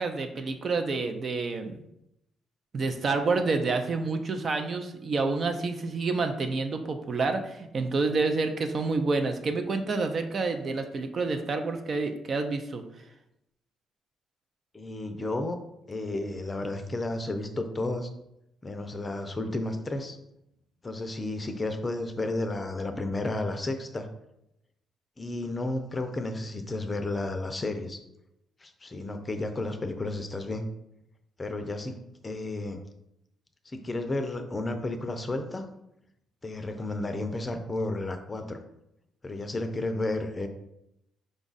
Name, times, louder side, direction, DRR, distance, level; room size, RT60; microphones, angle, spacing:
voice 1, 0.0-1.8 2.7-12.8, right 3 dB, 45° right, 6 dB, 0.5 m, -28 dB
voice 2, 14.7-15.6 15.9-18.1 18.6-20.2 20.8-24.1 25.2-28.0 28.6-30.7 31.4-32.0 32.2-32.8 33.7-35.7 36.4-38.6 39.2-40.5, left 2 dB, 25° left, 7 dB, 0.5 m, -32 dB
5.1 x 2.4 x 4.0 m, 0.82 s
cardioid pair, 90°, 0 cm